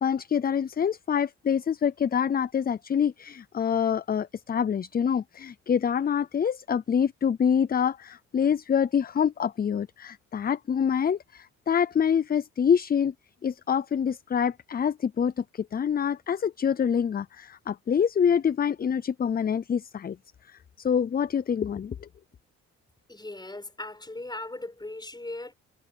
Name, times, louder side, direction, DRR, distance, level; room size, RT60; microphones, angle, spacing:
voice 1, 0.0-13.1 13.4-20.2 20.8-22.0, left 7 dB, 30° left, 0.5 m, -26 dB
voice 2, 23.1-25.5, left 2 dB, 15° left, 6.2 m, -38 dB
cardioid pair, 90°, 30 cm